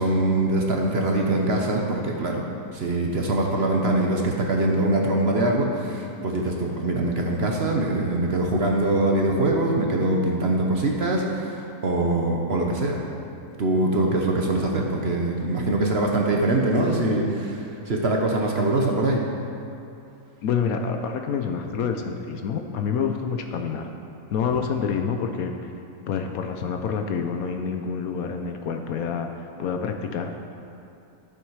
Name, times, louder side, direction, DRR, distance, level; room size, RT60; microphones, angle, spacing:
voice 1, 0.0-2.4 2.7-13.0 13.6-19.2, right 2 dB, 45° right, 0 dB, 1.0 m, -23 dB
voice 2, 20.4-23.9 24.3-25.7 26.1-30.3, left 6 dB, 70° left, 5 dB, 1.0 m, -27 dB
12.0 x 7.2 x 4.7 m, 2.7 s
omnidirectional pair, 1.7 m